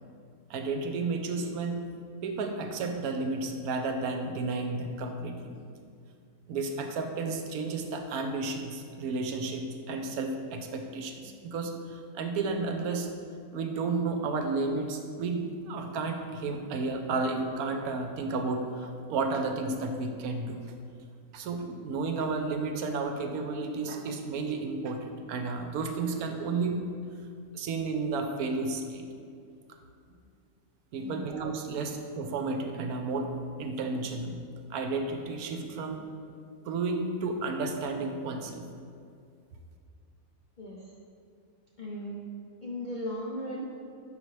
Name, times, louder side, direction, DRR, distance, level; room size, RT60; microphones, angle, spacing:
voice 1, 0.5-1.8 2.2-5.6 6.5-13.1 13.5-20.6 21.3-26.8 27.5-29.1 30.9-33.3 33.6-34.4 34.7-36.0 36.7-38.7, right 3 dB, 80° right, 5 dB, 1.1 m, -32 dB
voice 2, 31.0-31.3 40.6-40.8 41.8-42.2 42.6-43.6, left 1 dB, 60° left, -4 dB, 0.5 m, -36 dB
5.6 x 5.5 x 3.1 m, 2.3 s
omnidirectional pair, 1.5 m